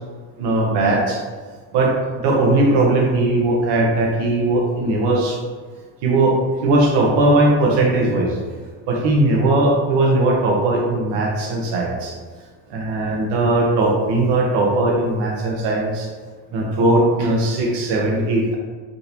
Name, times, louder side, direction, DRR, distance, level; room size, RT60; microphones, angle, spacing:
voice 1, 0.4-1.2 1.7-5.4 6.0-8.4 8.9-12.1 12.7-16.1 16.5-18.6, right 2 dB, 75° right, -1 dB, 0.9 m, -18 dB
3.8 x 2.9 x 2.6 m, 1.5 s
cardioid pair, 160°, 42 cm